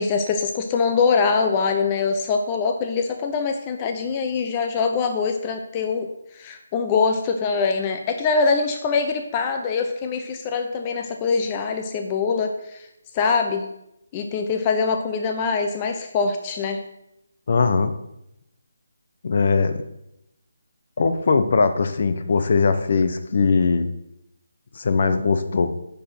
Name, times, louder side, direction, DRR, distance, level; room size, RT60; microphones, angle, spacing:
voice 1, 0.0-6.1 6.3-12.9 13.1-13.7 14.1-16.8, left 5 dB, 25° left, 5 dB, 0.7 m, -23 dB
voice 2, 17.5-17.9 19.2-19.7 21.0-23.9 24.8-25.7, left 4 dB, 55° left, 9 dB, 0.9 m, -20 dB
10.5 x 4.5 x 5.9 m, 0.84 s
figure-of-eight pair, 160°, 0 cm